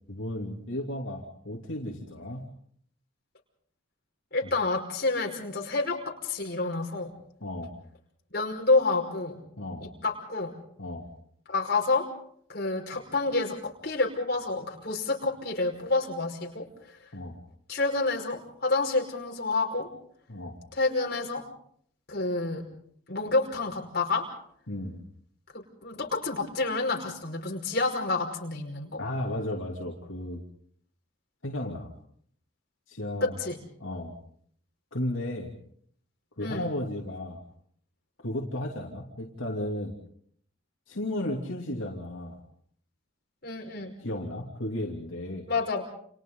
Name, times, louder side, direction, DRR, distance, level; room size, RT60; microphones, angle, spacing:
voice 1, 0.1-2.4 7.4-7.8 9.6-9.9 10.8-11.1 17.1-17.4 20.3-20.6 24.7-25.0 29.0-30.4 31.4-31.9 32.9-33.3 33.8-34.2 34.9-35.5 36.4-37.4 38.2-40.0 40.9-42.4 44.0-45.5, left 1 dB, 75° left, 0 dB, 3.0 m, -34 dB
voice 2, 4.3-7.1 8.3-9.4 9.8-10.5 11.5-12.1 12.5-17.0 17.7-19.9 20.7-21.4 22.1-22.6 23.1-24.3 25.5-29.0 33.2-33.6 36.4-36.6 43.4-43.9 45.5-45.8, left 3 dB, 50° left, 1 dB, 5.3 m, -28 dB
29.5 x 28.5 x 4.0 m, 0.62 s
head